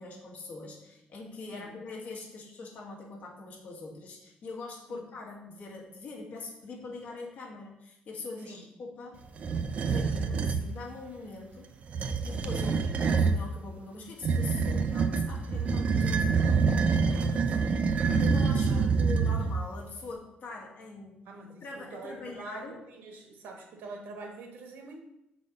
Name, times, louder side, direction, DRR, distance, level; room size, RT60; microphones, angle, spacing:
voice 1, 0.0-9.2 9.7-11.7 12.2-21.1 21.6-22.8, left 3 dB, 50° left, -1 dB, 1.6 m, -43 dB
sound 1, 9.4-10.7 11.8-13.4 14.2-19.7, right 5 dB, 40° right, 0.5 m, -26 dB
voice 2, 21.2-25.0, right 3 dB, 85° right, 3 dB, 1.3 m, -45 dB
6.2 x 4.2 x 5.1 m, 0.85 s
cardioid pair, 155°, 3 cm